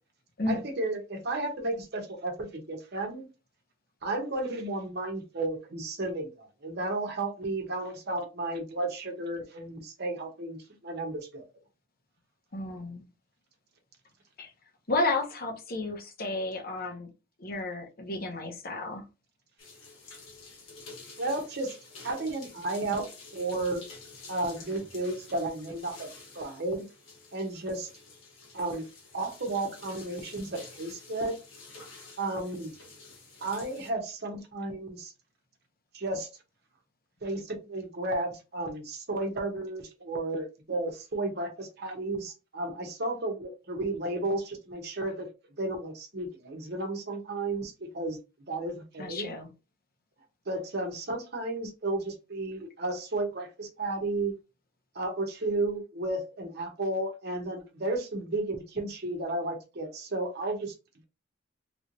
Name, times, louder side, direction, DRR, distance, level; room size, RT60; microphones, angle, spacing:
voice 1, 0.5-3.3 4.0-11.4 21.2-21.7 22.0-23.9 24.3-26.1 26.3-26.8 27.3-27.9 28.5-28.8 29.1-31.4 32.2-32.7 33.4-35.1 35.9-36.3 37.2-45.3 45.6-48.2 48.5-49.3 50.5-54.3 54.9-60.7, right 2 dB, 55° right, 0.9 m, -33 dB
voice 2, 12.5-13.0 14.4-14.5 14.9-17.1 17.4-19.0 49.0-49.5, left 2 dB, 45° left, 0.9 m, -32 dB
sound 1, 19.6-33.9, left 3 dB, 75° left, 1.3 m, -50 dB
3.4 x 3.0 x 2.5 m
head